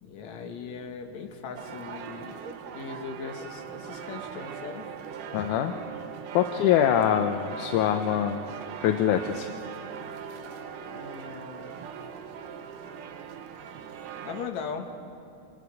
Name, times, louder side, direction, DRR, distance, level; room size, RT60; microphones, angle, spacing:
voice 1, 0.0-2.4 2.7-4.9 10.9-11.7 14.2-14.9, left 6 dB, 65° left, 3 dB, 2.6 m, -39 dB
sound 1, 1.5-14.5, right 7 dB, 85° right, 2.6 m, -40 dB
voice 2, 5.3-5.7 6.3-8.4 8.8-9.5, left 10 dB, 80° left, 6 dB, 2.2 m, -24 dB
26.0 x 20.5 x 4.8 m, 2.6 s
omnidirectional pair, 3.7 m